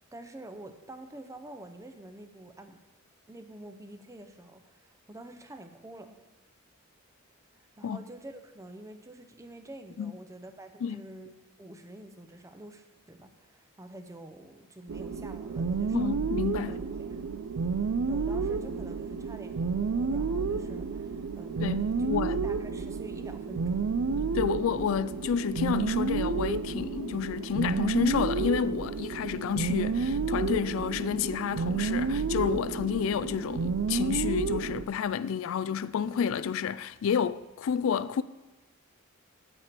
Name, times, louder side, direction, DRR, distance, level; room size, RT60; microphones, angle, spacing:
voice 1, 0.1-2.8 3.3-6.2 7.8-16.1 16.6-17.3 18.1-22.0 22.3-23.9 36.1-36.3, right 1 dB, 15° right, 0.6 m, -47 dB
sound 1, 14.9-34.8, right 5 dB, 75° right, 0.5 m, -30 dB
voice 2, 15.9-16.8 21.6-22.4 24.3-38.2, left 7 dB, 65° left, 0.3 m, -30 dB
9.2 x 7.7 x 4.4 m
head